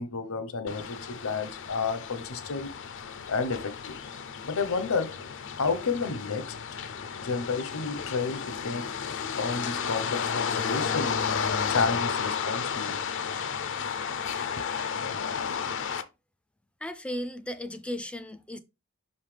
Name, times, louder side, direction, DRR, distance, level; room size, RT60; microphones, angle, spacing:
voice 1, 0.0-2.7 3.3-4.0 4.4-5.2 5.5-6.5 7.2-8.9 9.3-13.0 14.6-14.7, left 4 dB, 80° left, 0.9 m, -31 dB
sound 1, 0.7-16.0, left 6 dB, 60° left, 0.5 m, -32 dB
voice 2, 16.8-18.6, left 1 dB, 5° left, 0.4 m, -35 dB
5.5 x 5.5 x 3.3 m
head